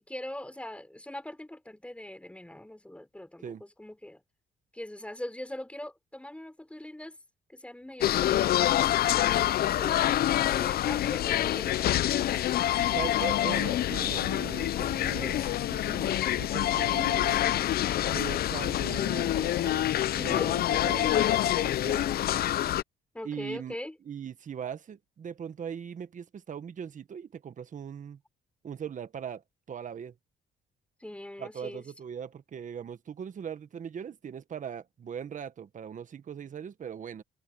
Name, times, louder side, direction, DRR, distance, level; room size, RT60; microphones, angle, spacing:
voice 1, 0.0-4.2 4.7-7.2 7.5-8.4 9.6-11.9 12.7-13.4 20.1-20.5 23.1-24.0 31.0-31.9, left 1 dB, 5° left, 4.2 m, -42 dB
sound 1, 7.9-9.5 9.8-13.3 13.7-13.8 14.0-15.6 15.9-17.7 18.0-18.1 18.4-20.9 21.1-21.2 21.6-22.7, right 3 dB, 25° right, 5.3 m, -58 dB
sound 2, 8.0-22.8, left 13 dB, 65° left, 0.5 m, -26 dB
voice 2, 12.9-15.4 15.7-17.4 18.1-19.8 20.1-22.1 23.2-23.7 24.0-28.2 28.6-29.4 29.7-30.1 31.4-37.2, right 8 dB, 50° right, 1.5 m, -40 dB
cardioid pair, 85°, 17 cm